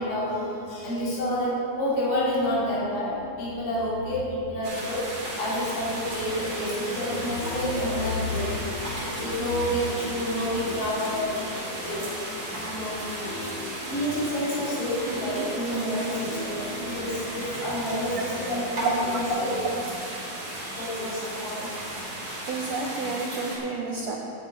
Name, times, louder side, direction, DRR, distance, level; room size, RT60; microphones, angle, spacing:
voice 1, 0.0-5.1 5.4-8.6 9.2-11.5 11.8-12.1 12.5-13.1 13.9-19.7 20.8-21.7, left 1 dB, 65° left, -8 dB, 4.7 m, -29 dB
sound 1, 4.6-23.6, right 1 dB, 40° right, 4.1 m, -35 dB
sound 2, 6.0-19.9, equal, 30° left, 1.8 m, -39 dB
voice 2, 22.5-24.2, right 4 dB, 85° right, 0 dB, 1.5 m, -30 dB
8.9 x 8.0 x 8.9 m, 2.6 s
omnidirectional pair, 4.2 m